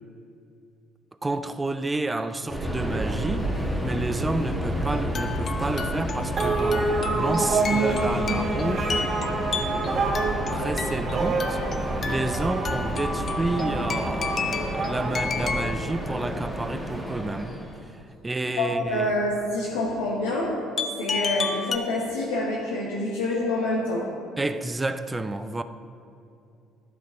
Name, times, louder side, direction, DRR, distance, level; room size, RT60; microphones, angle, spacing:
voice 1, 1.2-8.9 10.5-17.6 17.9-19.1 24.4-25.6, right 2 dB, 20° right, 0.4 m, -30 dB
Subway metro underground, 2.5-17.8, equal, ahead, 1.4 m, -31 dB
sound 1, 4.9-15.9 20.8-21.8, left 5 dB, 40° left, 0.5 m, -32 dB
sound 2, 6.4-16.2, right 3 dB, 45° right, 0.9 m, -28 dB
voice 2, 18.6-20.5 21.0-24.1, left 2 dB, 75° left, 1.0 m, -27 dB
11.5 x 5.2 x 4.4 m
figure-of-eight pair, 55°, 0 cm